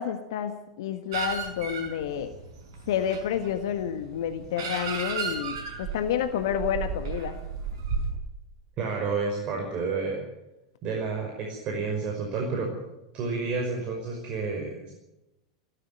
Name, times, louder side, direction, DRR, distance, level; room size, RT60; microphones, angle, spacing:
voice 1, 0.0-2.3 2.9-7.4, left 9 dB, 60° left, 8 dB, 1.5 m, -29 dB
sound 1, 1.1-8.1, right 5 dB, 60° right, 5.5 m, -34 dB
voice 2, 8.8-10.2 10.8-12.7 13.1-14.9, right 4 dB, 40° right, 1 dB, 5.6 m, -30 dB
17.0 x 16.5 x 9.4 m, 0.95 s
figure-of-eight pair, 90°, 3 cm